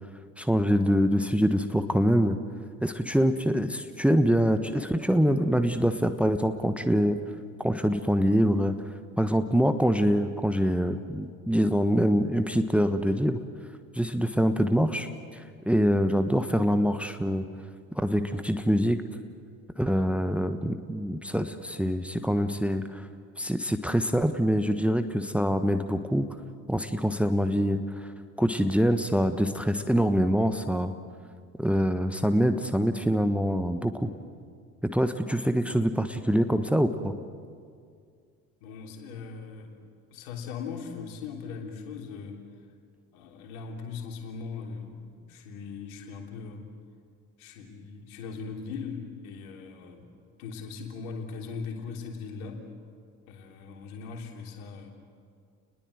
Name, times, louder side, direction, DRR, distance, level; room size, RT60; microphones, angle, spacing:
voice 1, 0.4-2.4 2.8-7.2 7.6-8.7 9.2-13.4 13.9-17.5 17.9-19.0 19.8-23.1 23.4-26.3 26.7-28.1 28.4-30.9 31.6-34.1 34.8-37.1, equal, 5° right, 9 dB, 1.3 m, -25 dB
voice 2, 38.6-39.8 40.1-42.4 43.1-46.6 47.4-50.1 50.4-52.6 53.3-54.9, left 5 dB, 65° left, 2 dB, 3.4 m, -39 dB
30.0 x 21.0 x 7.8 m, 2.2 s
figure-of-eight pair, 55°, 45 cm